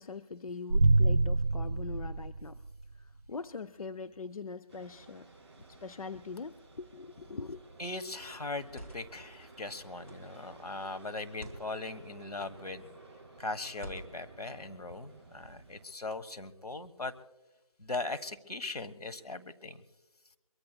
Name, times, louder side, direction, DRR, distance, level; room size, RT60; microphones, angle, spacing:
voice 1, 0.0-2.6 2.9-5.3 5.7-7.6, left 4 dB, 65° left, 11 dB, 0.5 m, -42 dB
sound 1, 0.7-3.0, right 2 dB, 65° right, 0.9 m, -26 dB
sound 2, 4.7-15.8, right 3 dB, 40° right, 6.5 m, -54 dB
sound 3, 7.4-7.7 8.5-9.2 10.0-10.4 11.2-11.7 12.6-12.9 13.7-14.4, equal, 20° left, 2.5 m, -48 dB
voice 2, 7.8-12.9 13.4-17.1 17.8-19.8, left 3 dB, 90° left, 11 dB, 1.3 m, -39 dB
23.0 x 22.5 x 2.3 m, 1.0 s
figure-of-eight pair, 170°, 19 cm